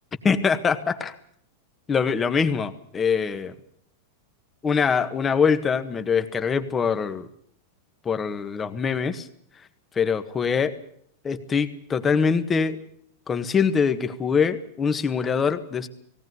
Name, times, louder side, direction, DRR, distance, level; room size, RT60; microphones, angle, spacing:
voice 1, 0.2-1.1 1.9-3.5 4.6-7.3 8.1-9.2 10.0-10.7 11.2-12.8 13.3-15.9, left 6 dB, 20° left, 10 dB, 1.7 m, -23 dB
18.5 x 18.0 x 9.7 m, 0.66 s
supercardioid pair, 130°, 0 cm